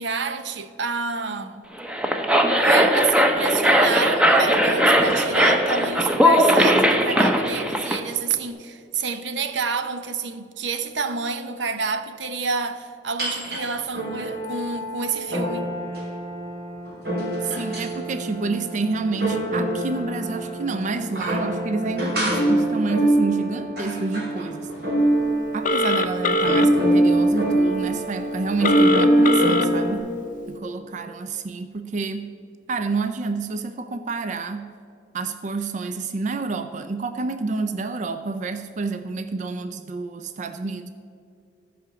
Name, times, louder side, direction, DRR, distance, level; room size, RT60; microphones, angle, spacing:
voice 1, 0.0-1.7 2.6-15.7, right 5 dB, 80° right, 0.7 m, -28 dB
sound 1, 1.8-8.0, equal, 5° right, 0.7 m, -19 dB
sound 2, 13.2-13.6 13.9-30.0, right 1 dB, 60° right, 2.7 m, -24 dB
voice 2, 17.4-24.7 25.5-30.1 30.5-32.3 32.7-34.7 35.1-40.9, right 3 dB, 40° right, 0.4 m, -28 dB
Telephone, 25.6-26.7 28.6-29.7, left 2 dB, 45° left, 0.5 m, -22 dB
14.0 x 5.0 x 6.8 m
head